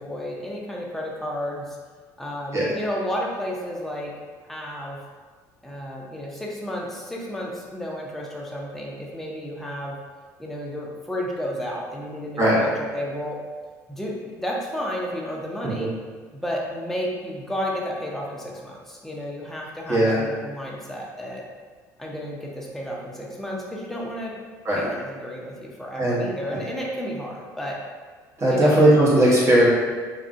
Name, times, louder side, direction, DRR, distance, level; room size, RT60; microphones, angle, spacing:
voice 1, 0.0-1.8 2.2-4.1 4.5-5.0 5.6-10.0 10.4-13.4 13.9-15.9 16.3-21.4 22.0-24.3 24.7-27.8 28.5-28.9, equal, 5° left, -3 dB, 0.5 m, -32 dB
voice 2, 28.4-29.7, right 1 dB, 30° right, -7 dB, 0.9 m, -18 dB
2.3 x 2.1 x 2.5 m, 1.5 s
hypercardioid pair, 70°, 9 cm